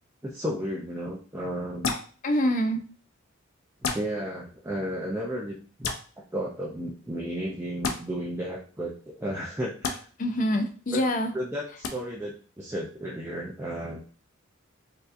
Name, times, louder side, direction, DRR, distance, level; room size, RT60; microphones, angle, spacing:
voice 1, 0.2-1.9 3.8-5.9 6.3-10.0 10.9-11.0 11.3-14.0, equal, 10° right, -4 dB, 0.4 m, -33 dB
sound 1, 1.8-2.1 3.8-4.0 5.8-6.0 7.8-8.0 9.8-10.0 11.8-11.9, left 4 dB, 80° left, 0.6 m, -28 dB
voice 2, 2.2-2.8 10.2-11.3, equal, 40° left, 6 dB, 0.5 m, -25 dB
4.5 x 2.7 x 2.5 m, 0.41 s
head